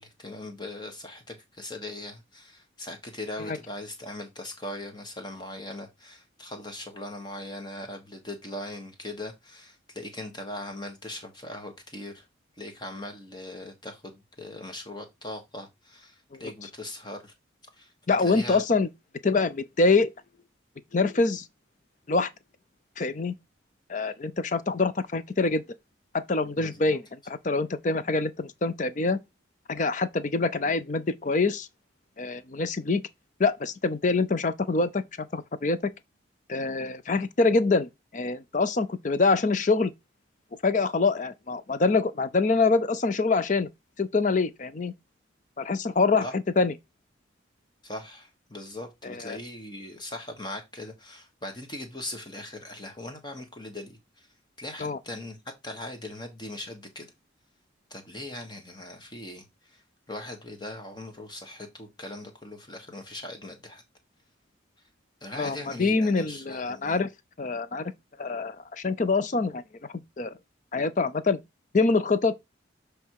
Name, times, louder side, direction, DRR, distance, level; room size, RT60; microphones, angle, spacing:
voice 1, 0.0-12.3 12.6-17.3 17.7-17.9 18.2-18.6 26.6-27.0 46.2-46.3 47.8-54.3 54.6-55.4 55.6-57.1 57.9-63.8 65.2-67.0, left 1 dB, 20° left, 1.3 m, -40 dB
voice 2, 18.1-18.9 19.2-20.1 20.9-21.5 22.1-22.3 23.0-23.3 23.9-25.6 26.1-29.2 29.7-31.7 32.2-33.0 33.4-35.9 36.5-39.9 40.6-43.7 44.0-44.9 45.6-46.7 49.0-49.4 54.8-55.0 65.3-67.1 67.4-67.9 68.2-69.6 69.9-70.3 70.7-71.4 71.7-72.3, left 3 dB, 40° left, 0.5 m, -25 dB
7.3 x 3.4 x 4.7 m
head